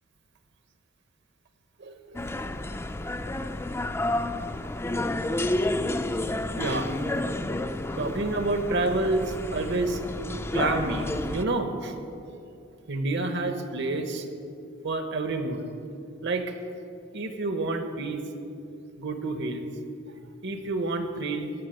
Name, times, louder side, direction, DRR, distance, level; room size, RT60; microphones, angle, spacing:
voice 1, 1.8-2.3 4.9-5.0 6.6-6.9 8.0-10.0 10.5-11.9 12.9-14.3 14.8-15.6 16.2-16.4 17.1-18.2 19.0-19.7 20.4-21.5, right 2 dB, 60° right, 7 dB, 1.2 m, -28 dB
sound 1, 2.1-11.4, left 1 dB, 15° left, 0.4 m, -30 dB
15.0 x 6.2 x 9.2 m, 2.6 s
head